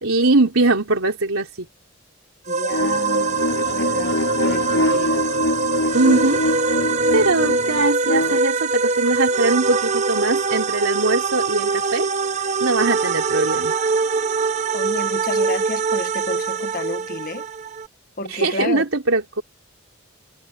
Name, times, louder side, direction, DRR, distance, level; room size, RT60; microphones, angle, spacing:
voice 1, 0.0-1.7 5.9-6.4 7.1-12.1 12.6-13.7 18.3-19.4, right 2 dB, 80° right, 3.6 m, -21 dB
voice 2, 2.5-5.3 14.7-17.4 18.2-18.8, left 2 dB, 40° left, 1.3 m, -31 dB
sound 1, 2.5-17.9, right 4 dB, 35° right, 0.8 m, -23 dB
sound 2, 2.7-8.4, left 1 dB, 70° left, 5.8 m, -24 dB
head